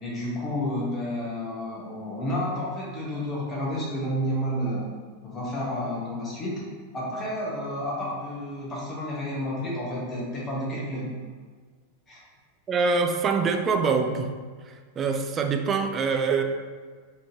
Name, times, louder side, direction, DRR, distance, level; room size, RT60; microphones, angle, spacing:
voice 1, 0.0-4.8 5.2-6.6 6.9-11.1 12.1-12.2, equal, 25° left, -5 dB, 1.3 m, -30 dB
voice 2, 12.7-14.3 14.6-16.4, right 5 dB, 25° right, 5 dB, 0.3 m, -24 dB
4.0 x 3.2 x 2.8 m, 1.5 s
figure-of-eight pair, 90°, 0 cm